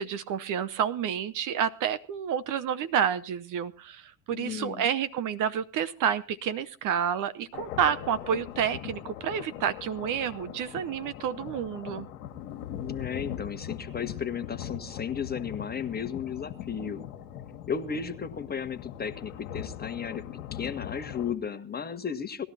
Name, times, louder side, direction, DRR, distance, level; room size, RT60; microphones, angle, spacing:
voice 1, 0.0-12.1, right 8 dB, 40° right, 0.9 m, -29 dB
voice 2, 4.3-4.9 12.6-17.0 17.7-20.3 20.5-22.5, left 7 dB, 20° left, 1.3 m, -34 dB
sound 1, 7.5-21.3, left 10 dB, 70° left, 1.6 m, -40 dB
18.5 x 12.5 x 4.2 m
hypercardioid pair, 75°, 46 cm